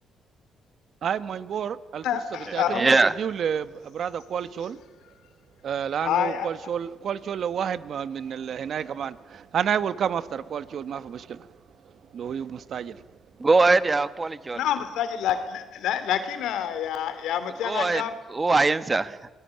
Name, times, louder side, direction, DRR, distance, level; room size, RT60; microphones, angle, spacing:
voice 1, 1.0-2.0 2.5-2.9 3.2-4.8 5.6-11.5 12.1-13.0, right 8 dB, 60° right, 1.2 m, -30 dB
voice 2, 2.0-2.8 6.0-6.5 14.5-18.1, left 9 dB, 85° left, 2.9 m, -27 dB
voice 3, 2.7-3.1 13.4-14.6 17.6-19.3, right 3 dB, 25° right, 1.3 m, -22 dB
26.5 x 19.5 x 9.9 m
cardioid pair, 90°, 0 cm